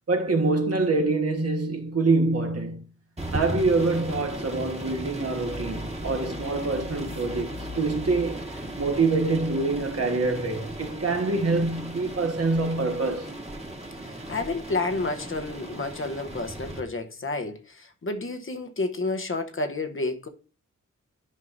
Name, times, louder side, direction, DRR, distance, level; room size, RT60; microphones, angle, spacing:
voice 1, 0.1-2.8 3.3-8.4 8.8-13.3, right 3 dB, 50° right, 1.4 m, -25 dB
sound 1, 3.2-16.8, right 1 dB, 20° right, 1.6 m, -36 dB
voice 2, 14.3-20.3, left 3 dB, 45° left, 0.9 m, -30 dB
10.5 x 5.5 x 2.6 m
wide cardioid pair, 95°, 30 cm